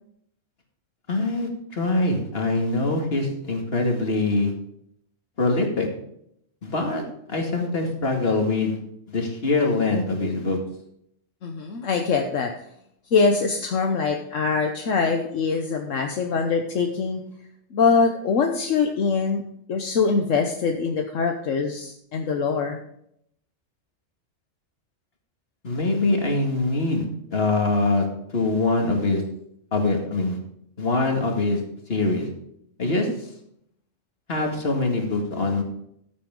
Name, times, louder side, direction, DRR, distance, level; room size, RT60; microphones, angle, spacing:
voice 1, 1.1-4.5 5.4-5.9 6.6-7.0 7.3-8.8 9.1-10.6 25.6-27.0 27.3-29.2 29.7-30.4 30.8-31.6 31.9-32.3 32.8-33.3 34.3-35.6, left 2 dB, 50° left, 2 dB, 2.3 m, -23 dB
voice 2, 11.4-12.5 13.1-17.2 17.7-19.4 19.7-22.8 32.8-33.1, left 5 dB, 75° left, 3 dB, 1.3 m, -23 dB
14.5 x 8.5 x 3.7 m, 0.72 s
omnidirectional pair, 1.3 m